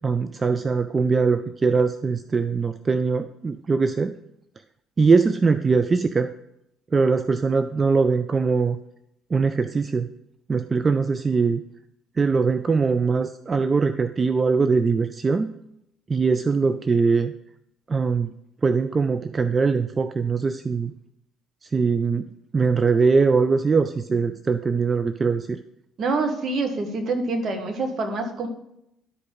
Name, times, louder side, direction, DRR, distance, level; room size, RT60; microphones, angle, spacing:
voice 1, 0.0-4.2 5.0-6.3 6.9-8.8 9.3-10.1 10.5-11.6 12.2-15.5 16.1-17.3 17.9-18.3 18.6-20.9 21.6-22.3 22.5-25.6, right 4 dB, 30° right, 10 dB, 0.4 m, -21 dB
voice 2, 26.0-28.5, right 3 dB, 45° right, 4 dB, 1.6 m, -26 dB
11.5 x 5.1 x 3.9 m, 0.79 s
figure-of-eight pair, 50°, 0 cm